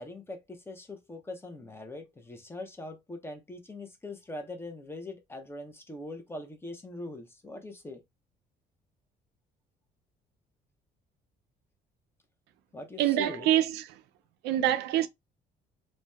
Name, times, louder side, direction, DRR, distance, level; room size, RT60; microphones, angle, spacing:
voice 1, 0.0-8.0 12.7-13.5, left 2 dB, 15° left, 0.6 m, -42 dB
voice 2, 13.0-13.9 14.4-15.1, right 12 dB, 85° right, 0.4 m, -25 dB
2.7 x 2.1 x 2.2 m
cardioid pair, 110°, 17 cm